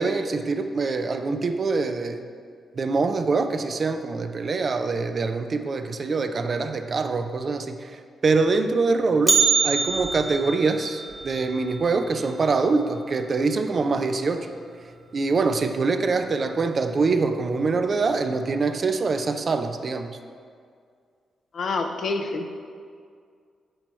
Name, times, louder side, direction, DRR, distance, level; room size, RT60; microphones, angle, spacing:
voice 1, 0.0-2.3 2.8-14.5 15.1-20.2, right 4 dB, 50° right, 7 dB, 0.4 m, -24 dB
Bell, 9.3-13.4 13.6-13.7 14.2-14.3 15.1-15.2 16.0-16.3 16.6-16.7, right 5 dB, 15° right, 0.8 m, -26 dB
voice 2, 21.5-22.5, left 3 dB, 60° left, 5 dB, 0.5 m, -27 dB
7.7 x 2.9 x 4.4 m, 2.2 s
hypercardioid pair, 40°, 0 cm